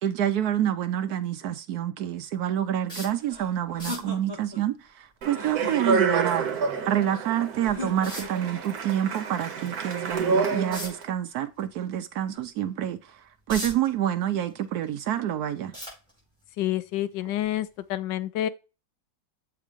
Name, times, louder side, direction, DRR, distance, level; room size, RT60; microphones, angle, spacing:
voice 1, 0.0-15.7, right 11 dB, 70° right, 0.9 m, -28 dB
sound 1, 2.9-3.2 3.7-4.1 6.9-7.0 8.0-8.4 10.7-11.0 11.6-11.7 12.2-12.3 13.1-13.9 14.4-15.1 15.7-16.4 17.3-17.5 17.9-18.0, equal, ahead, 4.7 m, -37 dB
sound 2, 3.3-4.6 5.3-6.3 7.6-8.5 10.0-10.9, left 2 dB, 15° right, 1.2 m, -39 dB
Speech, 5.2-11.0, right 5 dB, 55° right, 1.4 m, -28 dB
voice 2, 16.6-18.5, left 13 dB, 75° left, 1.2 m, -28 dB
7.1 x 3.7 x 5.0 m
omnidirectional pair, 2.1 m